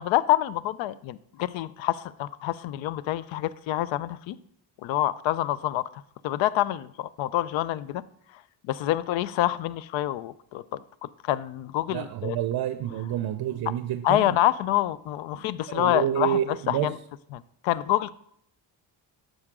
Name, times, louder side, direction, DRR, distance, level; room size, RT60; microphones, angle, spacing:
voice 1, 0.0-4.4 4.8-8.0 8.6-12.4 14.0-16.4 16.7-17.0 17.3-18.1, left 14 dB, 75° left, 18 dB, 0.5 m, -27 dB
voice 2, 11.9-14.2 15.3-16.9, right 11 dB, 55° right, 10 dB, 0.6 m, -29 dB
9.5 x 6.5 x 3.6 m, 0.69 s
cardioid pair, 80°, 46 cm